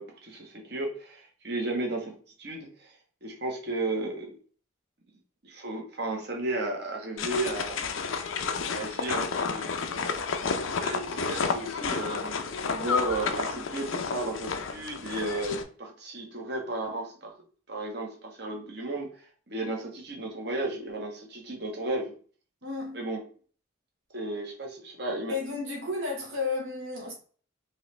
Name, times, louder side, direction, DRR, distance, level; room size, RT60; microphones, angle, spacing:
voice 1, 0.0-2.9 3.2-4.3 5.4-7.8 8.7-9.7 10.0-10.3 10.7-12.4 12.7-17.3 17.7-19.1 19.5-22.1 22.9-23.2 24.1-25.4, right 2 dB, 55° right, 1.4 m, -34 dB
sound 1, 7.2-15.6, left 5 dB, 90° left, 0.6 m, -31 dB
voice 2, 22.6-23.0 25.3-27.1, left 3 dB, 85° right, 1.5 m, -32 dB
4.5 x 3.2 x 3.2 m
head